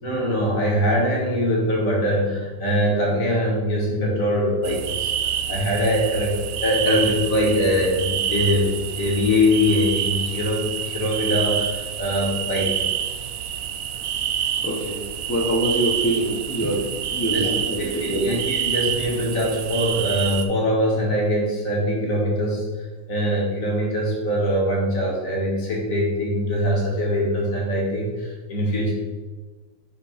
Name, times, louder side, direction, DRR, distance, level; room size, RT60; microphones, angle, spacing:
voice 1, 0.0-5.1 5.5-12.8 17.3-17.5 17.8-22.7 23.1-28.9, equal, 45° left, -2 dB, 1.9 m, -22 dB
sound 1, 4.6-20.5, right 9 dB, 70° right, 0.8 m, -27 dB
voice 2, 14.6-18.4, right 1 dB, 20° left, -1 dB, 0.4 m, -25 dB
5.2 x 5.0 x 5.0 m, 1.3 s
omnidirectional pair, 2.0 m